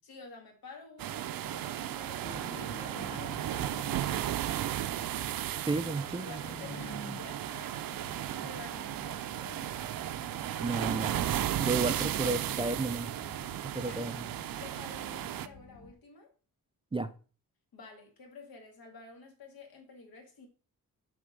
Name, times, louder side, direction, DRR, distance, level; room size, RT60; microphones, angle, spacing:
voice 1, 0.0-5.4 5.8-8.0 8.3-10.1 10.6-10.9 13.8-14.1 14.6-16.3 17.7-20.5, left 4 dB, 85° left, 2.1 m, -51 dB
sound 1, 1.0-15.5, right 12 dB, 75° right, 0.5 m, -35 dB
sound 2, 2.2-4.9 5.2-7.5 8.0-10.0, equal, 20° left, 1.0 m, -47 dB
voice 2, 5.6-6.4 10.6-11.3 11.6-13.1 13.7-14.3 16.9-17.1, right 3 dB, 15° right, 0.3 m, -32 dB
sound 3, 7.8-15.9, left 5 dB, 55° left, 1.1 m, -54 dB
6.8 x 3.7 x 5.2 m
wide cardioid pair, 150°, 35 cm